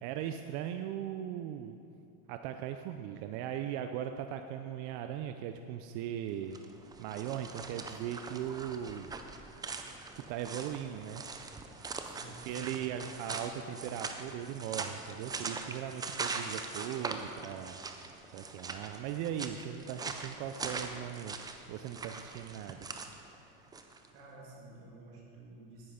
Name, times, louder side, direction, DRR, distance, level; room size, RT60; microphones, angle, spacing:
voice 1, 0.0-1.8 2.3-6.6 7.0-9.1 10.1-11.3 12.4-17.8 18.3-22.9, right 10 dB, 55° right, 7 dB, 0.6 m, -39 dB
sound 1, 6.4-24.1, right 4 dB, 10° right, 0.3 m, -42 dB
voice 2, 12.0-12.9 23.5-25.9, right 2 dB, 80° right, -3 dB, 3.0 m, -53 dB
10.5 x 9.8 x 5.0 m, 2.6 s
supercardioid pair, 120°, 45 cm